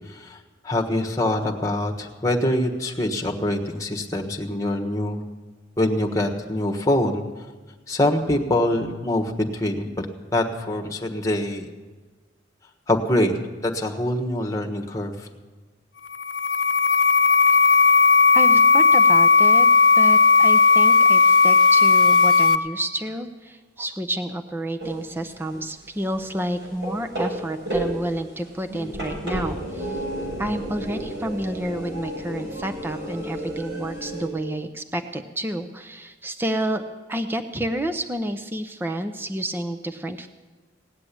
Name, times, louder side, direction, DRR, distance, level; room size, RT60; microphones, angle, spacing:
voice 1, 0.1-0.4 0.6-5.2 5.8-7.2 7.9-10.1 10.3-11.7 12.9-13.4 13.6-15.3, left 1 dB, 15° left, 3 dB, 1.3 m, -24 dB
sound 1, 16.1-22.6, left 4 dB, 75° left, 0.7 m, -15 dB
voice 2, 17.6-18.0 18.3-19.7 20.0-30.0 30.4-36.8 37.1-40.3, right 1 dB, 10° right, 7 dB, 0.6 m, -30 dB
sound 2, 24.8-25.3 25.5-34.3, right 1 dB, 65° right, 6.1 m, -32 dB
18.0 x 7.6 x 10.0 m, 1.3 s
head